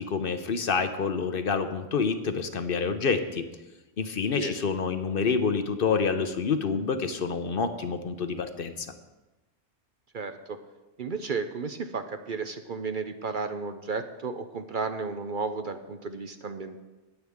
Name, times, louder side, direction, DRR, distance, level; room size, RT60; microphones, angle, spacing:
voice 1, 0.0-3.4 4.0-8.9, left 5 dB, 55° left, 9 dB, 0.9 m, -27 dB
voice 2, 10.1-10.6 11.0-16.8, right 4 dB, 50° right, 8 dB, 0.8 m, -33 dB
18.5 x 8.1 x 3.6 m, 1.1 s
omnidirectional pair, 1.2 m